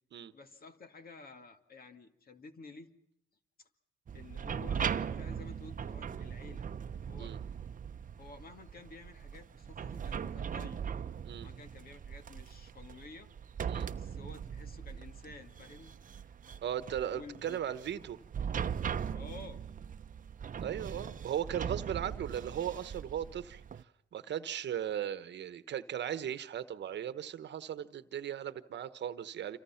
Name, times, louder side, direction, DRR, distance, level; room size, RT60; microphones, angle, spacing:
voice 1, 0.3-2.9 3.6-3.7 4.1-6.7 7.0-7.4 8.2-10.8 11.4-13.3 14.0-15.9 17.1-17.7 19.1-19.6, left 3 dB, 50° left, 2.3 m, -52 dB
sound 1, 4.1-23.8, right 7 dB, 40° right, 0.9 m, -40 dB
voice 2, 16.6-18.2 20.6-23.6 24.1-29.6, right 10 dB, 60° right, 1.2 m, -37 dB
28.0 x 25.0 x 5.9 m
cardioid pair, 90°, 20 cm